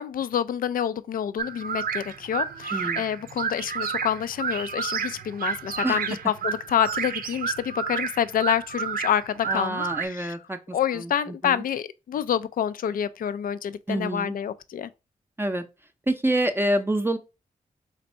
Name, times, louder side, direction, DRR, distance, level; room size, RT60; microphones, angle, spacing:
voice 1, 0.0-10.4 10.7-14.9, left 9 dB, 70° left, 0.4 m, -28 dB
sound 1, 1.4-10.1, right 6 dB, 80° right, 0.6 m, -31 dB
voice 2, 2.7-3.0 5.8-6.0 9.5-10.6 11.4-11.6 13.9-14.3 15.4-15.6 16.1-17.2, right 1 dB, 15° right, 0.6 m, -26 dB
4.0 x 2.6 x 4.3 m
cardioid pair, 60°, 15 cm